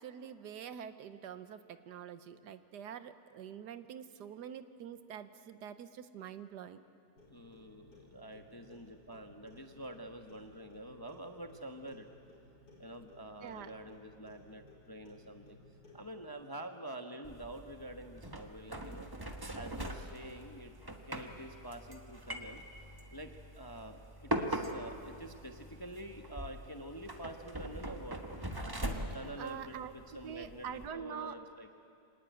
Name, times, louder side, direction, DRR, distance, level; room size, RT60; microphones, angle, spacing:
voice 1, 0.0-6.8 13.4-13.7 29.4-29.9 30.2-31.4, right 8 dB, 75° right, 12 dB, 1.4 m, -45 dB
Clock, 7.2-16.3, left 2 dB, 75° left, 5.1 m, -60 dB
voice 2, 7.3-12.1 12.8-15.6 15.9-19.1 19.5-20.7 21.0-22.6 23.1-28.2 29.1-31.7, right 1 dB, 15° left, 5 dB, 0.8 m, -47 dB
sound 1, 17.2-30.9, right 1 dB, 15° right, 1.2 m, -42 dB
25.5 x 18.5 x 9.1 m, 2.5 s
omnidirectional pair, 1.8 m